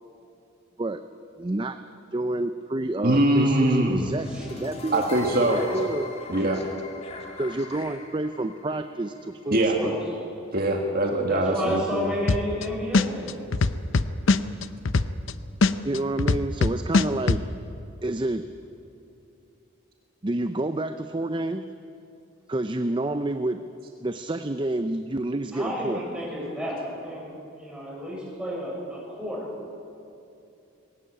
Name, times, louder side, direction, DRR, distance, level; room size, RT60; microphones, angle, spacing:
voice 1, 1.4-1.8 2.1-4.3 4.6-5.0 5.5-6.1 7.4-9.9 15.8-17.5 18.0-18.5 20.2-21.6 22.5-23.6 24.0-26.0, right 2 dB, 25° right, 9 dB, 0.5 m, -28 dB
voice 2, 3.0-4.0 4.9-5.6 6.3-6.6 9.5-9.8 10.5-12.1, right 1 dB, 45° right, 1 dB, 1.8 m, -22 dB
sound 1, 3.9-10.0, left 2 dB, 30° left, 2.1 m, -40 dB
voice 3, 9.5-10.0 11.2-13.6 25.5-29.5, equal, 5° right, -4 dB, 6.3 m, -32 dB
sound 2, 12.3-12.6 12.9-15.3 15.6-17.4, left 3 dB, 65° left, 0.7 m, -20 dB
20.5 x 18.0 x 8.7 m, 2.7 s
head